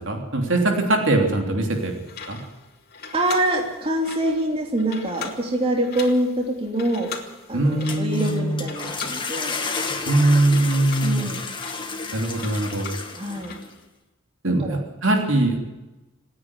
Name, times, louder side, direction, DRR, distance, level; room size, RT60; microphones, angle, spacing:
voice 1, 0.0-1.9 2.3-2.4 7.5-8.6 10.0-11.3 12.1-12.9 14.4-15.6, right 2 dB, 60° right, 2 dB, 3.2 m, -21 dB
sound 1, 1.7-13.8, left 5 dB, 45° left, 2.9 m, -40 dB
voice 2, 3.1-7.1 7.5-9.5 11.0-11.4 13.1-13.5 14.6-14.8, right 1 dB, 25° right, 1 dB, 2.9 m, -25 dB
sound 2, 7.7-13.7, left 4 dB, 25° left, 1.8 m, -32 dB
27.5 x 9.8 x 9.8 m, 1.1 s
head